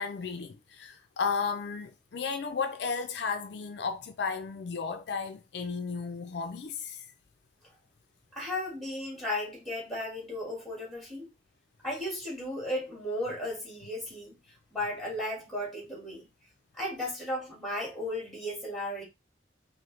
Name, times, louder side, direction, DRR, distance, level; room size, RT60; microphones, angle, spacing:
voice 1, 0.0-7.1, left 5 dB, 70° left, 0.4 m, -34 dB
voice 2, 8.3-11.3 11.8-14.3 14.7-16.3 16.7-19.0, left 1 dB, ahead, 2.3 m, -35 dB
4.3 x 2.7 x 3.1 m
head